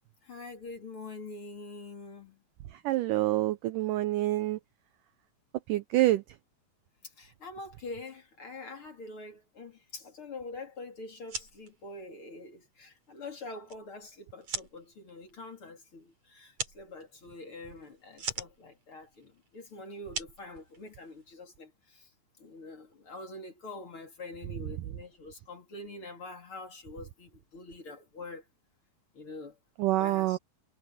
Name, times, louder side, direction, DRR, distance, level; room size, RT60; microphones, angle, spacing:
voice 1, 0.2-2.4 7.0-22.1 22.4-28.4 29.1-29.6 30.0-30.4, left 2 dB, 35° left, 3.6 m, -45 dB
voice 2, 2.7-4.6 5.7-6.2 29.8-30.4, right 16 dB, 80° right, 1.9 m, -27 dB
sound 1, 11.1-21.3, right 4 dB, 40° right, 6.8 m, -43 dB
omnidirectional pair, 4.6 m